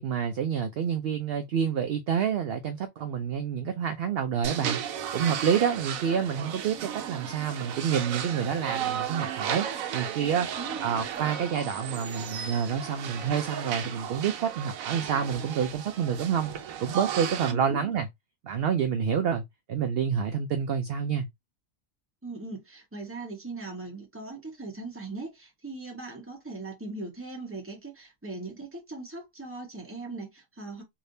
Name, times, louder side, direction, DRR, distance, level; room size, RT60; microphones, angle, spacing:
voice 1, 0.0-4.8 5.1-9.7 9.9-10.5 10.8-16.5 16.8-18.1 18.4-19.4 19.7-21.3, right 7 dB, 60° right, 0.6 m, -28 dB
sound 1, 4.4-17.5, right 9 dB, 85° right, 1.0 m, -35 dB
voice 2, 10.6-11.0 17.5-17.8 22.2-30.8, right 3 dB, 10° right, 1.1 m, -39 dB
3.3 x 2.8 x 2.6 m
omnidirectional pair, 1.4 m